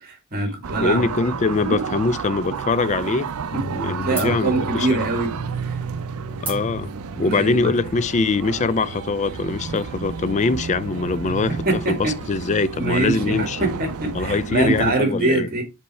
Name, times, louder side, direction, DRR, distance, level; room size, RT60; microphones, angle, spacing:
voice 1, 0.0-1.1 3.5-5.3 5.7-5.8 7.1-7.7 11.7-12.1 12.8-15.6, right 2 dB, 40° right, 1.9 m, -24 dB
sound 1, 0.6-15.0, right 6 dB, 80° right, 0.5 m, -31 dB
voice 2, 0.8-3.3 3.7-5.0 6.4-6.9 7.2-13.7 14.1-15.5, left 4 dB, 30° left, 0.4 m, -23 dB
Bass guitar, 3.5-9.8, left 3 dB, 70° left, 1.3 m, -39 dB
sound 2, 6.5-9.3, right 2 dB, 10° right, 2.2 m, -38 dB
5.4 x 4.4 x 4.1 m
head